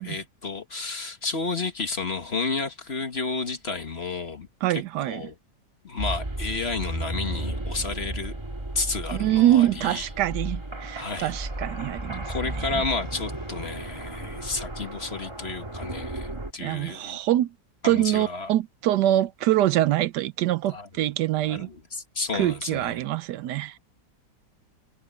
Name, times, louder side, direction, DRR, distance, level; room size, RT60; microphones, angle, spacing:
voice 1, 0.0-4.5 4.7-5.3 5.8-8.3 8.8-10.1 11.0-11.3 12.3-17.2 17.8-18.5 20.7-20.9 21.5-23.0, left 4 dB, 35° left, 1.7 m, -31 dB
voice 2, 4.6-5.2 9.1-12.3 12.6-12.8 16.6-17.5 17.8-21.7 22.3-23.8, right 13 dB, 75° right, 1.1 m, -24 dB
sound 1, 6.0-16.5, right 1 dB, 15° right, 1.8 m, -34 dB
omnidirectional pair, 1.9 m